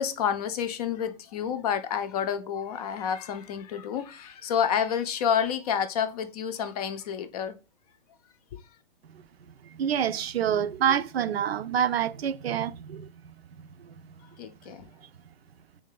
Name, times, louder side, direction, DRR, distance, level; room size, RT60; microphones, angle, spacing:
voice 1, 0.0-7.6 8.5-8.6 14.4-14.9, left 8 dB, 40° left, 0.5 m, -29 dB
voice 2, 9.7-13.1 13.8-13.9, right 9 dB, 80° right, 0.5 m, -27 dB
3.2 x 2.6 x 3.8 m
hypercardioid pair, 125°, 30 cm